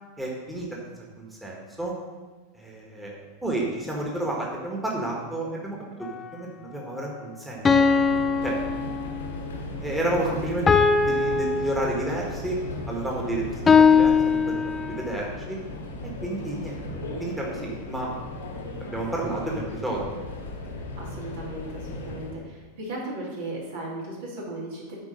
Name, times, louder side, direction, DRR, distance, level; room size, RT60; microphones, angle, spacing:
voice 1, 0.2-0.8 1.2-1.9 2.5-7.9 8.4-8.6 9.8-12.6 12.9-15.6 16.0-16.8 17.2-18.1 18.8-20.0, right 1 dB, 10° right, -3 dB, 1.6 m, -31 dB
sound 1, 6.0-6.2 7.6-9.4 10.7-12.4 13.7-15.2, left 5 dB, 20° left, 0.4 m, -21 dB
Subway metro underground, 7.6-22.4, left 2 dB, 75° left, 1.2 m, -36 dB
voice 2, 21.0-25.0, right 1 dB, 65° right, -4 dB, 2.4 m, -36 dB
8.2 x 4.6 x 5.2 m, 1.4 s
figure-of-eight pair, 90°, 0 cm